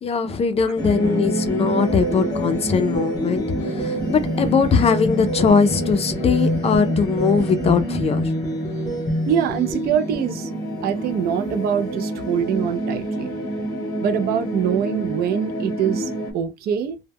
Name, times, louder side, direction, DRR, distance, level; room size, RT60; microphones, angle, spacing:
voice 1, 0.0-8.3, left 6 dB, 35° left, 0.4 m, -20 dB
sound 1, 0.8-16.3, right 1 dB, 20° left, 0.9 m, -26 dB
voice 2, 9.3-10.5 10.8-13.4 14.0-17.0, right 8 dB, 70° right, 0.4 m, -24 dB
2.1 x 2.1 x 3.3 m
cardioid pair, 110°, 17 cm